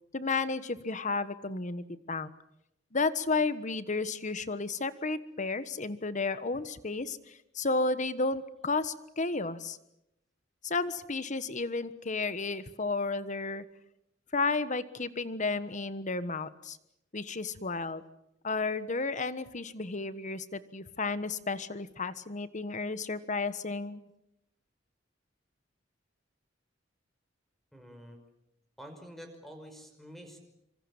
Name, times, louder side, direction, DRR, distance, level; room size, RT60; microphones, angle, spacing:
voice 1, 0.1-2.3 2.9-7.2 7.5-9.8 10.6-13.6 14.3-16.8 17.1-18.0 18.4-24.0, left 3 dB, 40° left, 13 dB, 1.3 m, -32 dB
voice 2, 27.7-28.2 28.8-30.4, equal, ahead, 5 dB, 5.5 m, -48 dB
26.0 x 25.5 x 7.3 m, 0.82 s
head